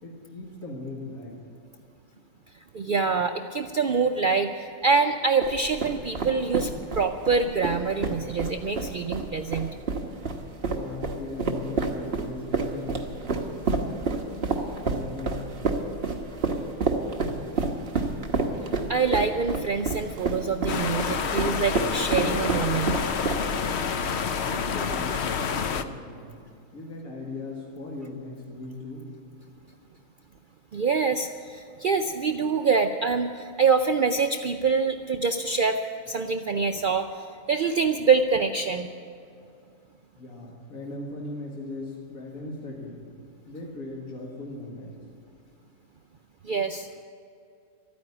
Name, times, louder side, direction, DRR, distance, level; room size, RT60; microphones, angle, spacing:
voice 1, 0.0-1.4 10.7-13.5 14.0-15.9 24.4-26.5 26.7-29.1 40.2-43.1 43.5-45.0, left 2 dB, 75° left, -3 dB, 2.2 m, -39 dB
voice 2, 2.7-9.7 18.9-22.9 30.7-35.8 36.1-38.9 46.4-46.9, right 5 dB, 70° right, 6 dB, 0.4 m, -25 dB
sound 1, 5.4-23.7, right 4 dB, 45° right, 1.3 m, -29 dB
sound 2, 20.7-25.8, left 6 dB, 60° left, 0.8 m, -28 dB
13.0 x 9.5 x 9.7 m, 2.5 s
omnidirectional pair, 1.5 m